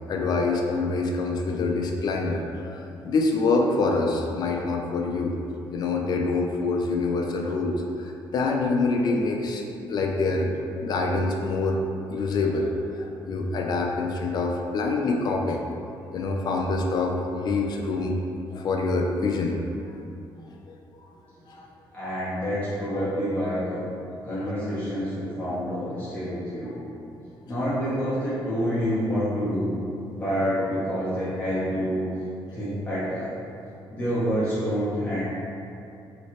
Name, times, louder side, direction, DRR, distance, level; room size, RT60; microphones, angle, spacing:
voice 1, 0.1-5.3 5.7-10.5 10.8-11.8 12.1-15.6 16.1-18.2 18.5-19.6 20.7-20.8 21.5-21.7, left 3 dB, 50° left, 1 dB, 0.3 m, -26 dB
voice 2, 21.9-23.9 24.2-26.8 27.5-29.7 30.1-32.0 32.5-33.3 33.9-35.2, equal, 15° left, -13 dB, 0.8 m, -27 dB
3.0 x 2.8 x 2.9 m, 2.7 s
cardioid pair, 135°, 9 cm